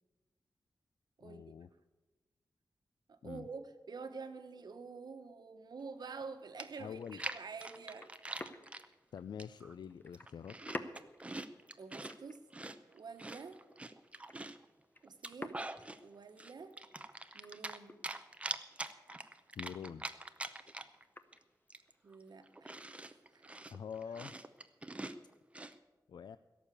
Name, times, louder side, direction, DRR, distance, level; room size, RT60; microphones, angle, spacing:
voice 1, 1.2-1.7 3.2-3.5 6.8-7.2 9.1-10.5 19.6-20.1 20.6-20.8 23.7-24.3 26.1-26.4, left 7 dB, 85° left, 14 dB, 0.4 m, -45 dB
voice 2, 3.1-8.2 11.8-12.4 12.9-13.6 15.0-15.7 16.0-16.8 17.3-18.0 22.0-23.6 24.9-25.0, right 4 dB, 70° right, 8 dB, 1.2 m, -48 dB
Chewing mastication, 6.2-6.3 6.6-8.9 9.4-9.7 10.1-12.1 12.5-14.6 15.1-16.0 16.4-17.8 18.0-21.0 21.3-21.4 21.7-25.7, right 2 dB, 15° right, 0.6 m, -44 dB
sound 1, 7.7-22.1, left 2 dB, 25° left, 0.8 m, -53 dB
16.5 x 7.2 x 8.4 m, 1.2 s
wide cardioid pair, 120°, 7 cm